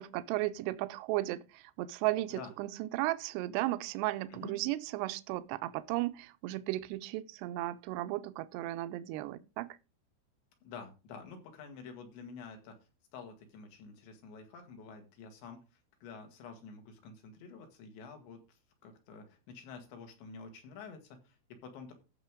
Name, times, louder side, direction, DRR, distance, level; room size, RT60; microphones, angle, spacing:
voice 1, 0.0-9.7, right 17 dB, 85° right, 2.5 m, -35 dB
voice 2, 10.6-12.8 13.1-15.6 16.0-21.9, left 5 dB, 75° left, 4.1 m, -49 dB
14.5 x 6.4 x 3.7 m
omnidirectional pair, 5.4 m